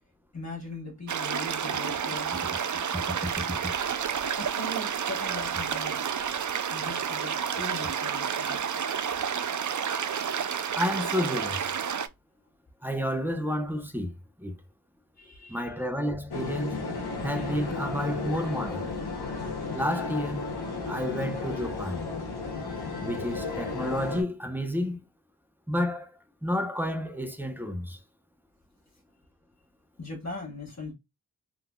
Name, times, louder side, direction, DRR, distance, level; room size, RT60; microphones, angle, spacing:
voice 1, 0.3-2.3 4.4-6.0 6.7-8.7 13.3-13.4 15.2-15.7 30.0-30.9, left 2 dB, 45° left, 1.8 m, -40 dB
sound 1, 1.1-12.1, right 7 dB, 50° right, 0.5 m, -30 dB
voice 2, 10.7-11.7 12.8-14.6 15.5-16.9 17.2-18.9 19.7-20.5 20.9-22.0 23.0-25.0 25.7-26.1 26.4-28.0, equal, 5° right, 0.9 m, -30 dB
sound 2, 16.3-24.2, left 3 dB, 85° left, 1.1 m, -34 dB
3.9 x 2.6 x 2.3 m
cardioid pair, 40°, 38 cm